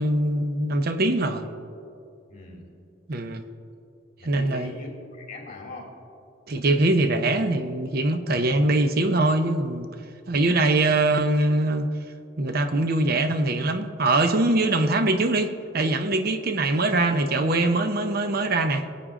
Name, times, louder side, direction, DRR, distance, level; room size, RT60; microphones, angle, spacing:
voice 1, 0.0-1.5 3.1-3.4 4.2-4.7 6.5-9.9 10.3-11.9 12.4-18.8, right 2 dB, 50° right, 8 dB, 0.7 m, -23 dB
voice 2, 2.3-2.6 4.2-6.0 10.3-10.5, left 2 dB, 45° left, 0 dB, 3.0 m, -40 dB
22.5 x 8.6 x 3.7 m, 2.5 s
head